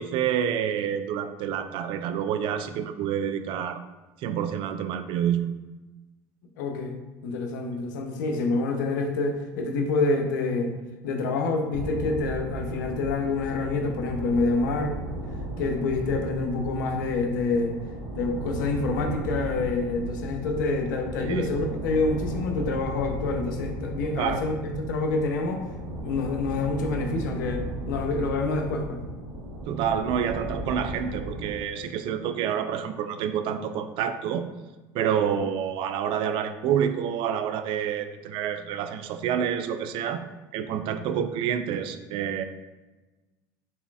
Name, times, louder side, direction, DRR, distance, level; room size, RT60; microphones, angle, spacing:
voice 1, 0.0-3.8 4.2-5.5 21.2-21.5 24.2-24.4 29.7-34.4 34.9-40.2 40.5-42.4, right 8 dB, 60° right, 10 dB, 0.4 m, -28 dB
voice 2, 6.6-7.0 7.2-10.7 11.0-15.0 15.6-17.8 18.2-25.7 26.0-29.0, left 3 dB, 85° left, 4 dB, 0.6 m, -27 dB
sound 1, 11.7-31.5, right 1 dB, 90° right, 0.8 m, -35 dB
4.2 x 4.0 x 2.3 m, 1.2 s
supercardioid pair, 90°, 10 cm